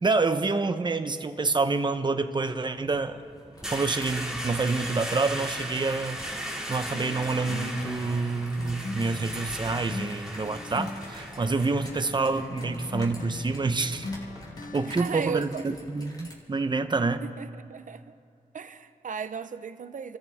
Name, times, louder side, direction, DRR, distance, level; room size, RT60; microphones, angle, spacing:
voice 1, 0.0-3.2 3.7-6.2 6.7-14.1 14.7-17.2, right 3 dB, 30° right, 0.9 m, -27 dB
sound 1, 2.8-14.5, equal, 5° right, 2.4 m, -38 dB
sound 2, 3.5-16.3, left 1 dB, 25° left, 3.8 m, -49 dB
sound 3, 6.9-15.0, left 3 dB, 65° left, 1.5 m, -40 dB
voice 2, 14.8-15.6 17.2-18.2 18.5-20.2, right 6 dB, 60° right, 0.8 m, -36 dB
29.5 x 13.5 x 3.6 m
wide cardioid pair, 90°, 15 cm